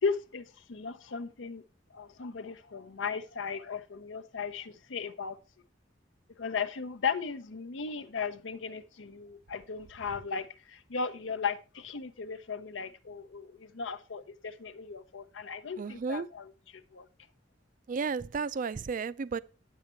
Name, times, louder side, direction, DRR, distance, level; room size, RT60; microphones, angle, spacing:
voice 1, 0.0-1.6 1.9-5.4 6.4-17.1, left 5 dB, 85° left, 0.7 m, -36 dB
voice 2, 15.8-16.3 17.9-19.4, right 5 dB, 45° right, 0.4 m, -33 dB
9.0 x 7.3 x 4.3 m
head